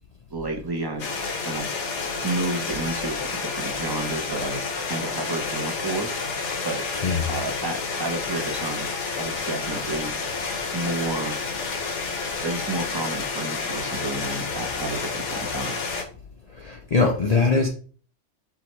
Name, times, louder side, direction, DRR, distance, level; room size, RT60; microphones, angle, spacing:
voice 1, 0.3-1.1 1.4-1.8 2.2-6.2 6.6-6.8 7.3-8.9 9.2-10.1 10.7-11.4 12.4-15.8, right 2 dB, 25° right, 0.5 m, -31 dB
sound 1, 1.0-16.0, left 4 dB, 70° left, 1.1 m, -30 dB
voice 2, 16.6-17.7, left 4 dB, 40° left, 0.6 m, -21 dB
4.8 x 3.2 x 3.1 m
omnidirectional pair, 1.3 m